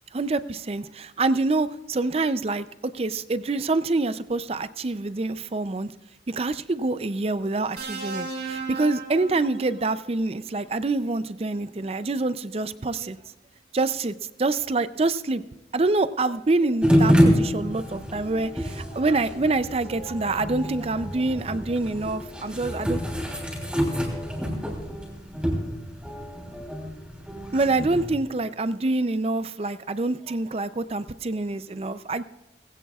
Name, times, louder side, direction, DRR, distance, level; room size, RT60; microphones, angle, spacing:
voice 1, 0.1-2.7 2.9-5.9 6.3-13.2 13.7-14.1 14.4-15.4 15.7-23.0 27.5-32.2, right 3 dB, 35° right, 14 dB, 0.5 m, -26 dB
sound 1, 7.8-10.0 11.3-11.6, right 4 dB, 80° right, 3.7 m, -35 dB
sound 2, 16.8-28.1, equal, 5° right, 3.2 m, -26 dB
20.0 x 16.5 x 2.4 m, 1.1 s
head